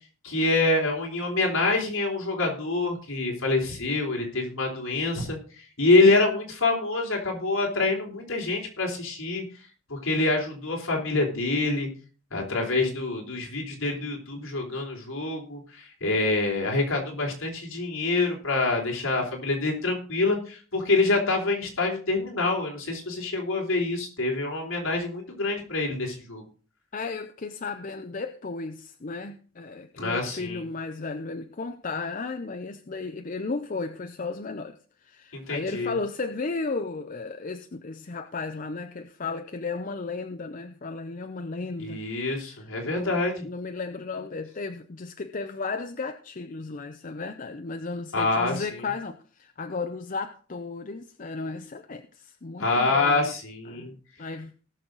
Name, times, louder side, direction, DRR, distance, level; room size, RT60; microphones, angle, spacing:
voice 1, 0.2-9.4 9.9-11.9 12.3-26.4 30.0-30.6 35.3-35.9 41.8-43.5 48.1-48.6 52.6-53.9, left 2 dB, 70° left, 0 dB, 3.5 m, -26 dB
voice 2, 26.9-42.0 42.5-53.3 53.7-54.5, left 3 dB, 40° left, 7 dB, 0.6 m, -34 dB
18.5 x 6.3 x 3.9 m, 0.38 s
head